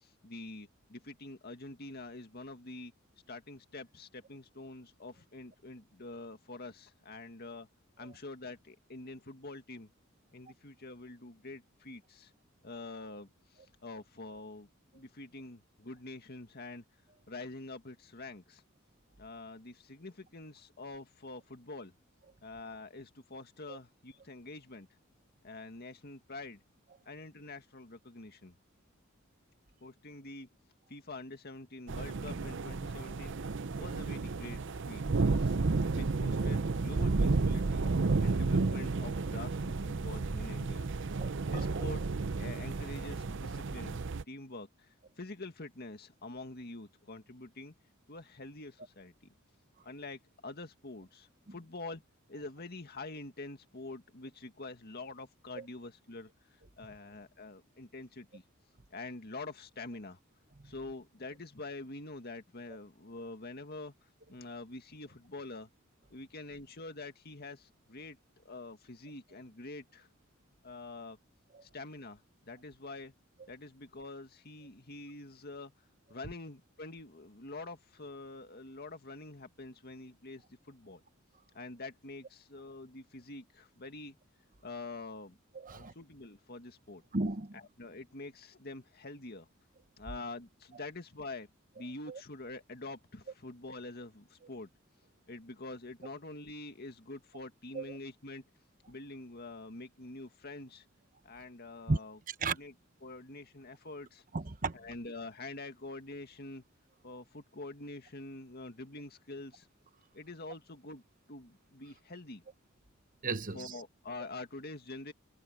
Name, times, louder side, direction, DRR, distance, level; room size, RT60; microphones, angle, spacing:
voice 1, 0.0-2.9 3.3-7.7 8.0-9.9 10.3-12.3 12.6-16.8 17.3-18.6 19.2-21.9 22.4-24.9 25.4-26.6 27.1-28.5 29.8-30.5 30.9-33.3 33.8-35.5 35.9-37.9 38.2-40.9 41.5-42.0 42.4-44.0 44.3-44.9 45.2-47.7 48.1-49.1 49.8-52.0 52.3-56.3 56.8-58.4 58.9-60.2 60.6-63.9 64.3-65.7 66.1-68.2 68.4-70.1 70.6-71.2 71.6-72.2 72.5-73.1 73.5-75.7 76.1-81.0 81.5-84.2 84.6-85.4 85.7-87.0 87.5-89.5 90.0-91.5 91.8-94.7 95.3-98.4 98.9-100.9 101.2-102.2 102.5-102.7 103.0-104.2 104.7-106.6 107.0-109.7 110.1-111.0 111.3-112.4 113.5-115.1, left 2 dB, 50° left, 2.1 m, -46 dB
sound 1, 31.9-44.2, right 3 dB, 60° right, 0.7 m, -32 dB
voice 2, 41.2-41.6 55.6-55.7 85.5-85.9 87.1-87.6 92.1-92.2 97.7-98.0 101.9-102.0 102.3-102.6 104.3-104.8 113.2-113.8, right 3 dB, 40° right, 1.1 m, -34 dB
head